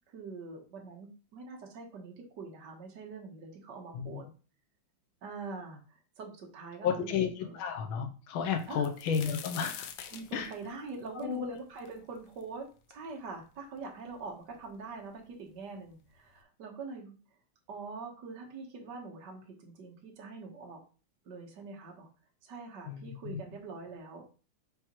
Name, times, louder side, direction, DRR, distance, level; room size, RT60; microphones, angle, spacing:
voice 1, 0.1-4.3 5.2-7.6 8.7-8.8 10.1-17.2 17.7-20.8 21.3-22.1 22.4-24.2, right 4 dB, 60° right, 1 dB, 1.8 m, -44 dB
voice 2, 6.8-9.9 10.3-10.5 11.1-11.5 22.9-23.4, left 7 dB, 90° left, 5 dB, 1.5 m, -32 dB
sound 1, 8.6-12.4 12.9-13.0 13.8-13.9 14.1-14.8 15.7-15.8 16.2-16.4, left 8 dB, 70° left, 1.3 m, -45 dB
8.7 x 3.6 x 3.0 m, 0.36 s
omnidirectional pair, 2.2 m